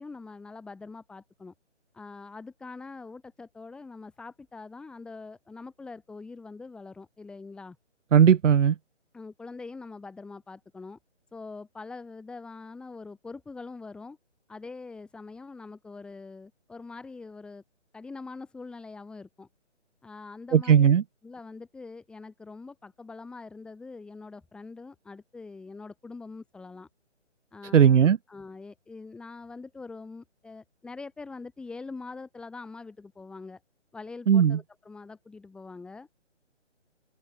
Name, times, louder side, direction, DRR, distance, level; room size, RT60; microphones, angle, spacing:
voice 1, 0.0-1.5 1.9-7.8 9.1-11.0 11.3-14.2 14.5-17.6 17.9-19.5 20.0-20.9 21.2-26.9 27.5-33.6 33.9-36.1, left 3 dB, ahead, 1.6 m, -43 dB
voice 2, 8.1-8.7 20.5-21.0 27.7-28.2 34.3-34.6, right 8 dB, 90° right, 0.6 m, -18 dB
open air
hypercardioid pair, 160°, 36 cm